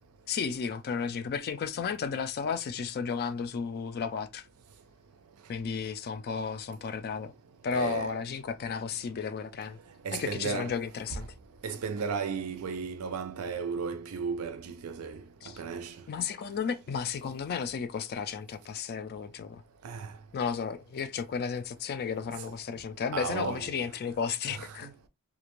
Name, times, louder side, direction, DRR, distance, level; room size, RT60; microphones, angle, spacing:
voice 1, 0.3-4.5 5.5-7.3 7.6-9.8 10.1-11.3 15.4-15.6 16.1-19.6 20.3-24.9, left 6 dB, 45° left, 0.3 m, -33 dB
voice 2, 7.7-8.2 10.0-10.7 11.6-15.2 15.6-16.0 19.8-20.1 23.1-23.7 24.5-24.9, right 5 dB, 70° right, 0.4 m, -34 dB
2.5 x 2.1 x 3.0 m
head